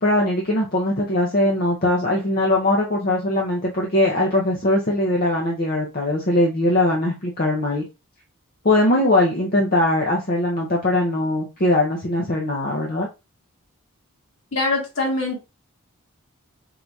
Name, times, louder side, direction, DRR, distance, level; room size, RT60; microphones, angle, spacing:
voice 1, 0.0-7.8 8.6-13.1, left 1 dB, 45° left, 0.8 m, -20 dB
voice 2, 14.5-15.4, left 2 dB, 60° left, 2.0 m, -23 dB
3.9 x 2.7 x 4.6 m
head